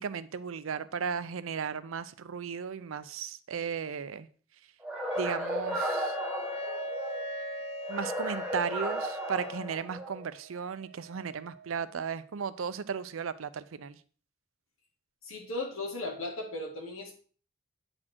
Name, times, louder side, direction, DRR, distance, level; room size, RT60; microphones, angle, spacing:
voice 1, 0.0-4.3 5.2-6.2 7.9-14.0, right 6 dB, 75° right, 0.5 m, -35 dB
sound 1, 4.8-7.3 7.8-10.3, right 1 dB, 5° right, 0.9 m, -35 dB
Wind instrument woodwind instrument, 5.1-9.8, left 6 dB, 30° left, 0.4 m, -40 dB
Wind instrument woodwind instrument 2, 6.4-12.1, right 6 dB, 60° left, 1.7 m, -45 dB
voice 2, 15.2-17.1, left 2 dB, 85° left, 2.1 m, -36 dB
8.7 x 4.3 x 4.4 m
head